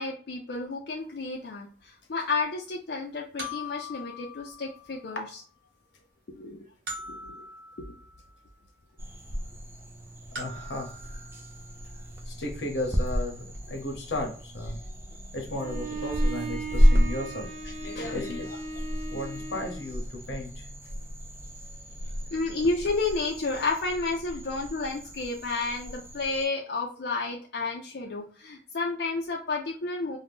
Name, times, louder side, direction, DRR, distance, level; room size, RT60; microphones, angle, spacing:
voice 1, 0.0-5.2 6.3-6.7 7.1-7.4 7.8-7.9 17.6-18.4 22.3-30.2, left 3 dB, 65° left, -1 dB, 0.4 m, -31 dB
sound 1, 1.0-1.1 3.4-5.3 6.9-8.5 10.4-11.8, left 2 dB, 60° right, 1.1 m, -42 dB
sound 2, 9.0-26.5, equal, 15° right, 0.4 m, -31 dB
voice 2, 10.4-11.2 12.3-14.8 15.3-17.5 18.1-18.5 19.1-20.7, left 2 dB, 90° left, 3 dB, 0.8 m, -34 dB
Bowed string instrument, 15.5-20.0, right 4 dB, 45° right, 0.7 m, -38 dB
2.6 x 2.1 x 3.4 m, 0.42 s
head